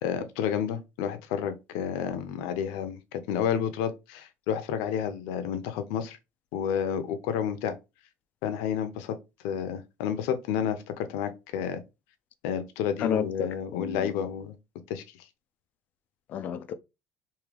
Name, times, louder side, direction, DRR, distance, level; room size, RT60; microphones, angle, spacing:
voice 1, 0.0-6.2 6.5-7.8 8.4-9.2 9.4-11.8 12.4-14.5 14.9-15.0, left 8 dB, 80° left, 0.7 m, -30 dB
voice 2, 13.0-14.1 16.3-16.7, left 8 dB, 40° left, 0.4 m, -31 dB
3.7 x 2.8 x 3.3 m
cardioid pair, 165°, 4 cm